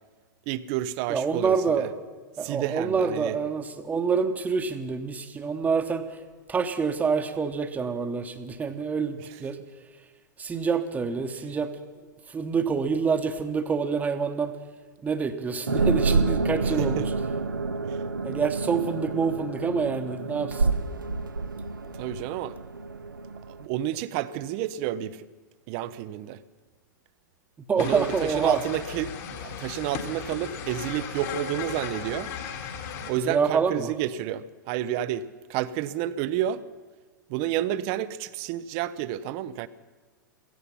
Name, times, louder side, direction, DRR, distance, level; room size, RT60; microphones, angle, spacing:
voice 1, 0.5-1.9 2.4-3.4 16.8-17.0 17.9-18.0 21.9-22.6 23.5-25.3 25.7-26.4 27.8-32.3 33.1-36.7 37.3-39.7, right 12 dB, 40° right, 16 dB, 0.7 m, -30 dB
voice 2, 1.1-1.9 2.4-6.2 6.5-9.6 10.4-11.8 12.3-14.6 15.0-17.1 18.2-20.7 27.7-28.6 33.2-33.9, right 5 dB, 15° right, 8 dB, 1.1 m, -27 dB
sound 1, 15.7-23.7, right 3 dB, 80° right, 0.8 m, -28 dB
sound 2, 27.8-33.1, left 6 dB, 45° left, 2.2 m, -36 dB
16.5 x 15.0 x 5.7 m, 1.4 s
figure-of-eight pair, 100°, 11 cm